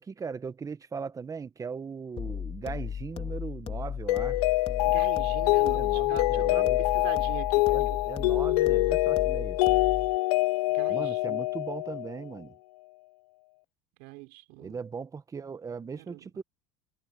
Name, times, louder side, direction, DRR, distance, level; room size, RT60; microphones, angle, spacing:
voice 1, 0.0-4.4 5.8-6.8 7.7-9.6 10.9-12.5 14.6-16.4, right 5 dB, 15° right, 1.1 m, -39 dB
sound 1, 2.2-10.2, left 8 dB, 30° left, 3.0 m, -36 dB
Mallet percussion, 4.1-12.2, left 20 dB, 90° left, 0.6 m, -25 dB
voice 2, 4.8-6.7 6.9-8.0 10.7-11.4 14.0-14.8 16.0-16.3, right 24 dB, 70° right, 3.4 m, -42 dB
supercardioid pair, 135°, 19 cm